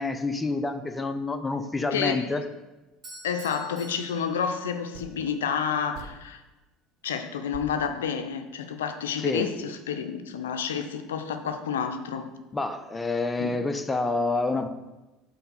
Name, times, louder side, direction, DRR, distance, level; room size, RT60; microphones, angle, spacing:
voice 1, 0.0-2.4 9.2-9.5 12.5-14.7, left 3 dB, 15° left, 8 dB, 0.6 m, -28 dB
voice 2, 1.9-2.3 3.2-6.4 7.0-12.3 13.4-13.6, left 7 dB, 85° left, 8 dB, 0.5 m, -30 dB
sound 1, 2.9-3.0 4.9-5.4 5.9-6.6 7.0-7.1 7.5-8.7, right 5 dB, 65° right, 0.7 m, -45 dB
Bell / Doorbell, 3.0-5.1, right 2 dB, 45° right, 2.4 m, -48 dB
5.7 x 4.1 x 5.5 m, 1.1 s
hypercardioid pair, 75°, 0 cm